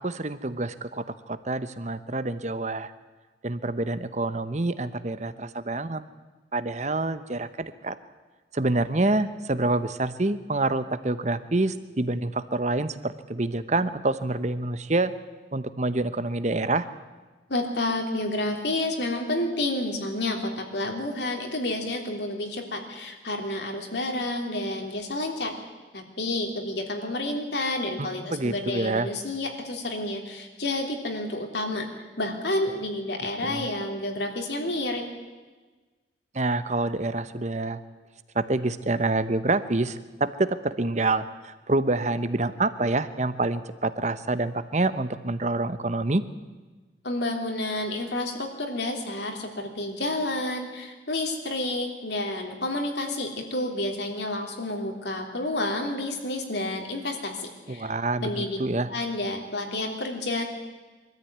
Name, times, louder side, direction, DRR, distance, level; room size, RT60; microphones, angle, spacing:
voice 1, 0.0-2.9 3.4-6.0 6.5-8.0 8.5-15.1 15.5-16.9 28.0-29.1 33.4-33.7 36.3-37.8 38.3-46.2 57.7-58.9, right 2 dB, 40° right, 13 dB, 1.0 m, -27 dB
voice 2, 17.5-25.5 25.9-31.9 32.2-35.0 47.0-57.9 58.2-58.6 58.9-60.4, left 2 dB, 65° left, 3 dB, 3.2 m, -30 dB
24.0 x 13.5 x 9.4 m, 1.3 s
head